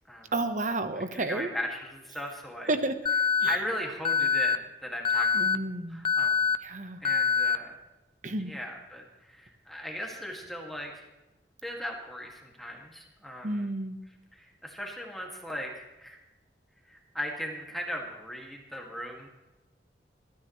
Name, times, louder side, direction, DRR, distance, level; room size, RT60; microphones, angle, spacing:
voice 1, 0.3-1.5 2.7-3.0 3.4-3.5 5.3-6.0 6.6-7.0 8.2-8.5 13.4-14.0, right 2 dB, 45° right, 9 dB, 1.1 m, -31 dB
voice 2, 1.0-2.7 3.4-5.3 5.9-6.3 7.0-7.8 8.5-11.0 11.6-13.7 14.3-16.2 16.9-19.3, equal, ahead, 0 dB, 2.2 m, -38 dB
Alarm, 3.1-3.6 4.1-4.6 5.1-5.6 6.1-6.6 7.1-7.6, left 6 dB, 30° left, 0.4 m, -24 dB
20.5 x 13.5 x 3.2 m, 1.1 s
head